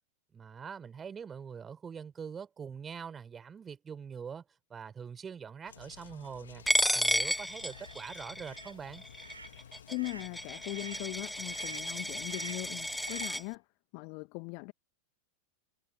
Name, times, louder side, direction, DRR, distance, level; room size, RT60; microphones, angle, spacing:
voice 1, 0.3-4.4 4.7-6.6 6.9-9.0, right 6 dB, 20° right, 4.8 m, -43 dB
sound 1, 5.7-13.3, left 8 dB, 65° left, 2.5 m, -53 dB
Coin (dropping), 6.7-13.4, equal, ahead, 1.9 m, -33 dB
sound 2, 7.7-7.9 8.4-8.8 9.2-9.6 9.9-10.3 10.7-11.1 11.5-11.9 12.3-12.7 13.0-13.4, right 3 dB, 80° right, 5.2 m, -48 dB
voice 2, 9.9-13.7 13.9-14.7, left 40 dB or more, 45° left, 2.1 m, -40 dB
figure-of-eight pair, 90°, 0 cm